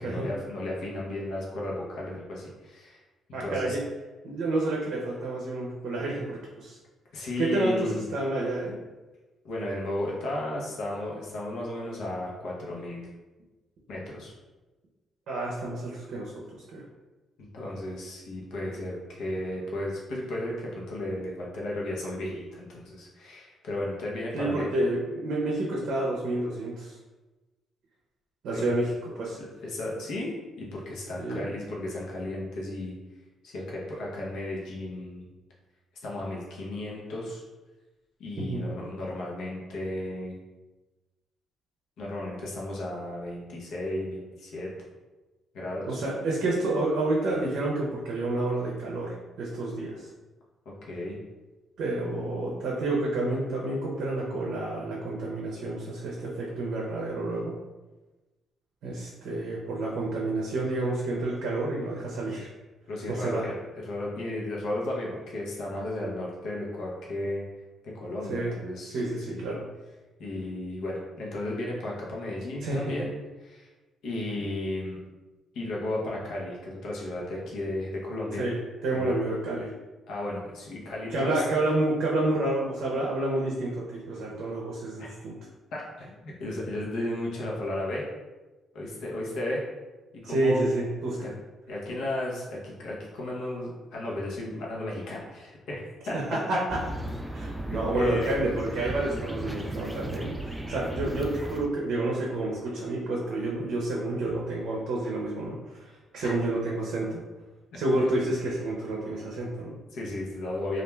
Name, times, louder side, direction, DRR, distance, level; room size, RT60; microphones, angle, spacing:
voice 1, 0.0-3.0 3.4-3.8 7.1-8.0 9.4-13.1 13.9-14.3 17.4-24.7 28.5-28.7 29.6-32.9 33.4-35.3 36.0-37.4 38.2-40.4 42.0-44.7 45.5-46.0 50.8-51.2 62.9-63.6 63.8-67.4 67.8-69.5 70.2-73.1 73.4-73.7 74.0-75.0 75.5-78.5 78.9-79.1 80.1-81.4 85.0-85.1 85.7-88.0 88.7-89.6 90.2-90.6 91.2-91.3 91.7-96.4 97.9-98.4 106.2-106.4 108.0-108.1 109.9-110.8, left 1 dB, 80° left, -3 dB, 0.7 m, -34 dB
voice 2, 3.3-3.8 4.2-6.8 7.4-8.8 15.3-16.8 24.3-27.0 28.4-29.4 31.2-31.5 38.5-38.6 45.9-50.1 51.8-57.5 58.8-62.5 63.1-63.5 68.3-68.5 68.9-69.6 72.6-72.9 78.4-79.7 81.1-85.3 90.2-91.3 96.1-96.8 97.3-107.2 107.8-109.7, right 2 dB, 75° right, -3 dB, 0.5 m, -29 dB
sound 1, 96.7-101.7, right 1 dB, 5° right, 0.3 m, -35 dB
2.4 x 2.2 x 3.1 m, 1.2 s
cardioid pair, 90°, 0 cm